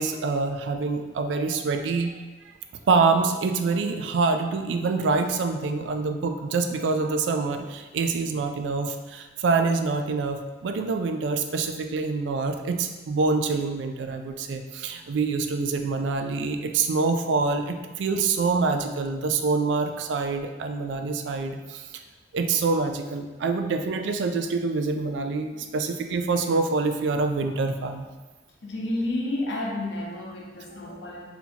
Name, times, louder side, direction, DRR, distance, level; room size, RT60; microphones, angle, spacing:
voice 1, 0.0-2.1 2.9-21.8 22.3-28.1, right 4 dB, 75° right, 6 dB, 0.3 m, -26 dB
voice 2, 28.6-31.3, left 1 dB, 75° left, -2 dB, 0.8 m, -31 dB
4.3 x 2.7 x 2.8 m, 1.2 s
head